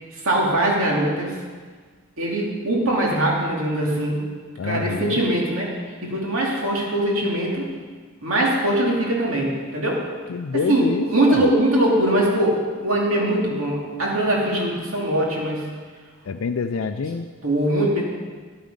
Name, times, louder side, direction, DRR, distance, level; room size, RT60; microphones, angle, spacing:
voice 1, 0.2-1.4 2.2-4.2 4.6-5.7 6.0-7.7 8.2-10.0 10.5-15.7 17.4-18.0, right 1 dB, 75° right, -2 dB, 2.5 m, -22 dB
voice 2, 4.6-5.2 10.3-11.5 16.3-17.3, left 5 dB, 70° left, 6 dB, 0.4 m, -26 dB
10.5 x 8.8 x 5.3 m, 1.5 s
head